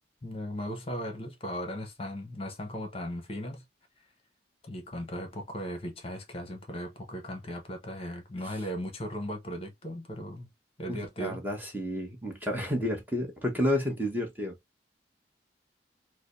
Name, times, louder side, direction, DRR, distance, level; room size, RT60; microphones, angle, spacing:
voice 1, 0.2-3.6 4.6-10.5 10.8-11.5, equal, 35° left, 0.9 m, -37 dB
voice 2, 10.9-14.5, left 1 dB, 10° right, 1.0 m, -31 dB
4.8 x 2.1 x 2.4 m
head